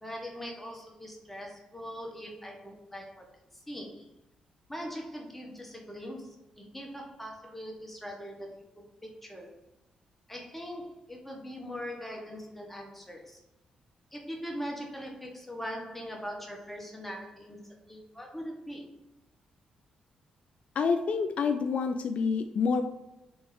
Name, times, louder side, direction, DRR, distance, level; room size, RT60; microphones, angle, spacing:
voice 1, 0.0-3.2 3.7-4.1 4.7-8.6 9.0-9.5 10.3-13.4 14.1-18.9, equal, 5° left, 0 dB, 1.1 m, -41 dB
voice 2, 20.8-22.8, left 5 dB, 60° left, 7 dB, 0.3 m, -27 dB
3.5 x 3.4 x 3.4 m, 0.92 s
cardioid pair, 65°, 3 cm